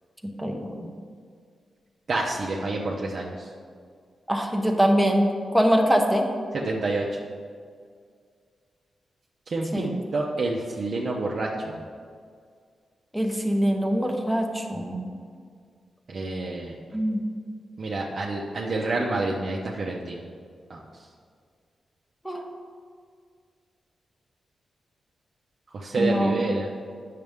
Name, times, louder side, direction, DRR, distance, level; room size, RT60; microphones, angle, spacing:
voice 1, 0.4-0.9 4.3-5.3 5.5-6.3 9.7-9.9 13.1-15.1 16.9-17.2 22.2-22.4 25.9-26.4, equal, ahead, 2 dB, 0.9 m, -23 dB
voice 2, 2.1-3.5 6.5-7.0 9.5-11.8 16.1-16.7 17.8-20.2 20.7-20.8 25.7-26.7, right 2 dB, 45° right, -2 dB, 0.7 m, -28 dB
9.3 x 6.5 x 3.5 m, 2.1 s
wide cardioid pair, 145°, 0 cm